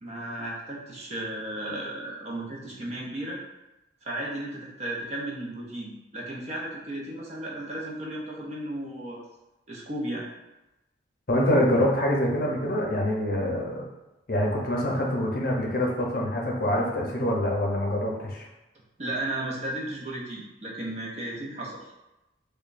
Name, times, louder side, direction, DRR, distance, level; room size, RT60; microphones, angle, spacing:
voice 1, 0.0-3.4 4.0-9.2 9.7-10.3 19.0-21.9, right 1 dB, 35° right, -3 dB, 0.6 m, -34 dB
voice 2, 11.3-13.9 14.3-18.5, left 1 dB, 50° left, -2 dB, 0.7 m, -25 dB
4.9 x 2.2 x 2.5 m, 0.97 s
head